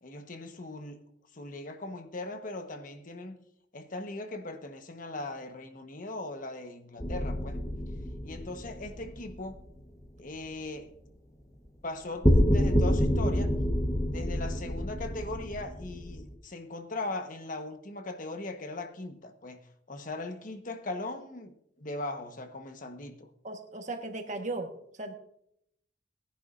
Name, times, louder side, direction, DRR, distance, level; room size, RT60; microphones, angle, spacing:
voice 1, 0.0-1.0 1.3-3.4 3.7-7.6 8.2-9.6 10.2-10.9 11.8-13.5 14.1-23.3, left 2 dB, 45° left, 1.2 m, -39 dB
sound 1, 7.0-9.8 12.2-16.4, equal, 20° left, 1.2 m, -28 dB
voice 2, 23.4-24.7 25.0-25.1, right 2 dB, 40° right, 1.4 m, -36 dB
19.5 x 10.5 x 2.6 m
head